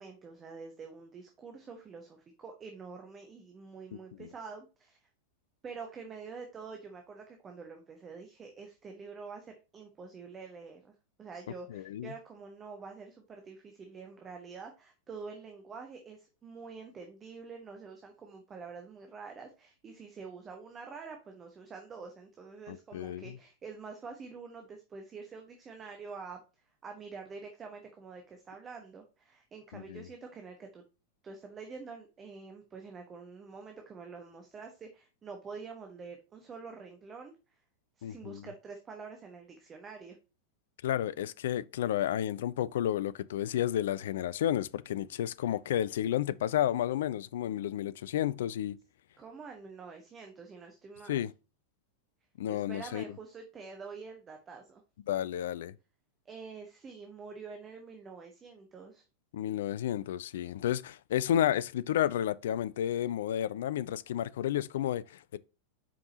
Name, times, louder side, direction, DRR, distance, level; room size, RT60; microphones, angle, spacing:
voice 1, 0.0-5.0 5.6-26.4 26.8-30.8 31.2-37.3 38.0-40.2 49.2-51.3 52.5-54.8 56.2-59.0, right 5 dB, 20° right, 1.2 m, -47 dB
voice 2, 11.7-12.1 22.7-23.4 29.7-30.1 38.0-38.4 40.8-48.8 51.1-51.3 52.4-53.0 55.1-55.7 59.3-65.4, left 11 dB, 60° left, 0.3 m, -31 dB
7.5 x 5.2 x 2.8 m
figure-of-eight pair, 90°, 0 cm